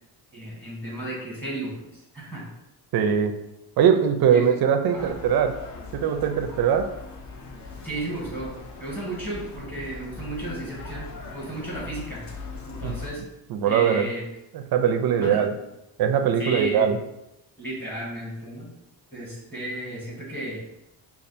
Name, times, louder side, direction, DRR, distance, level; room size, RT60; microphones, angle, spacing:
voice 1, 0.3-2.5 4.3-4.6 4.9-5.1 7.8-8.5 8.8-12.2 12.7-13.2 13.7-14.2 15.2-15.5 16.4-16.9 17.6-18.7 19.1-20.6, right 1 dB, 5° left, -4 dB, 1.1 m, -34 dB
voice 2, 2.9-3.3 3.8-5.5 5.9-6.8 12.8-12.9 13.5-14.0 14.7-15.5 16.0-17.0, right 8 dB, 55° right, 6 dB, 0.5 m, -21 dB
sound 1, 4.9-13.1, left 4 dB, 40° left, 0.6 m, -40 dB
5.3 x 2.4 x 2.5 m, 0.89 s
cardioid pair, 135°, 45 cm